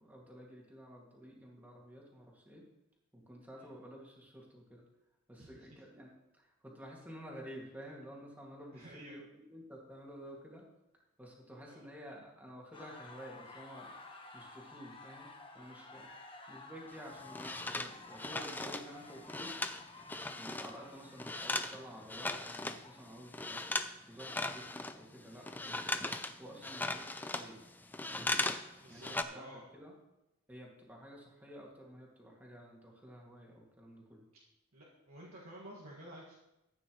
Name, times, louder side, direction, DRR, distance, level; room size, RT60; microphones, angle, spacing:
voice 1, 0.0-2.6 3.1-4.8 5.3-10.7 11.2-13.9 14.3-19.5 20.4-26.1 26.4-27.6 28.1-28.4 28.9-30.0 30.5-34.2, equal, 10° right, -3 dB, 2.2 m, -51 dB
voice 2, 5.4-5.7 8.7-9.2 11.6-11.8 20.7-20.9 28.8-29.7 34.7-36.4, right 1 dB, 90° right, -6 dB, 1.9 m, -52 dB
sound 1, 12.7-23.4, left 3 dB, 25° left, 1.1 m, -53 dB
sound 2, 16.9-20.8 21.0-22.8 23.2-23.9 24.2-28.7 28.9-29.2, left 2 dB, 10° left, 0.4 m, -38 dB
14.5 x 9.0 x 3.1 m, 0.95 s
head